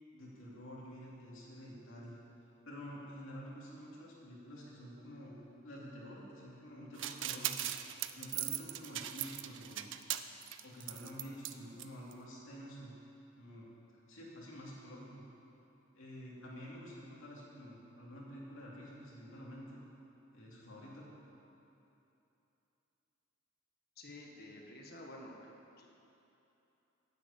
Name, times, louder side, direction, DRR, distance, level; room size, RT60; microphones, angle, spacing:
voice 1, 0.1-2.2 2.7-5.4 5.6-9.9 10.6-12.9 13.4-13.7 14.1-15.2 15.9-19.8 20.3-21.1, equal, 75° left, -5 dB, 2.7 m, -49 dB
sound 1, 7.0-11.5 11.8-11.9 12.1-12.2, right 13 dB, 65° right, 0.5 m, -39 dB
voice 2, 24.0-25.9, left 1 dB, 50° left, 1 dB, 1.5 m, -51 dB
10.5 x 8.3 x 8.5 m, 2.9 s
head